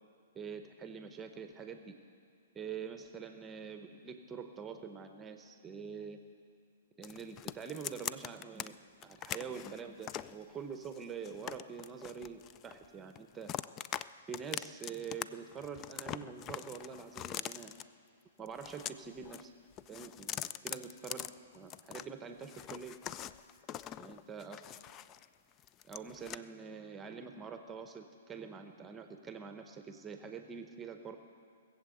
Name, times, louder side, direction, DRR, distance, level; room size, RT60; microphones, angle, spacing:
voice 1, 0.3-1.9 2.5-6.2 7.0-8.8 9.0-13.5 14.3-17.7 18.4-19.5 19.9-23.0 24.0-24.6 25.9-31.2, right 6 dB, 15° right, 7 dB, 0.8 m, -45 dB
sound 1, 7.0-8.7 9.0-10.3 10.8-12.9 13.1-14.0 14.3-15.2 15.5-17.8 18.5-19.4 19.7-22.0 22.4-25.3 25.6-26.4, left 11 dB, 30° left, 0.3 m, -43 dB
19.5 x 7.6 x 7.8 m, 2.3 s
hypercardioid pair, 135°, 0 cm